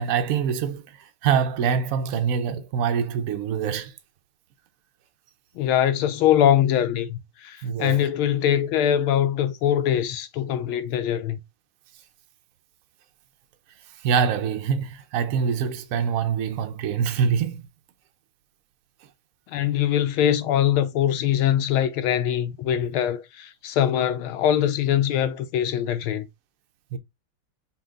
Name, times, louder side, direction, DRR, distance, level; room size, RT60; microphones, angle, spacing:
voice 1, 0.0-3.9 7.6-8.0 14.0-17.6 26.9-27.0, right 7 dB, 85° right, 0.7 m, -25 dB
voice 2, 5.6-11.4 19.5-26.3, left 10 dB, 80° left, 1.5 m, -22 dB
5.7 x 2.4 x 3.8 m
omnidirectional pair, 2.3 m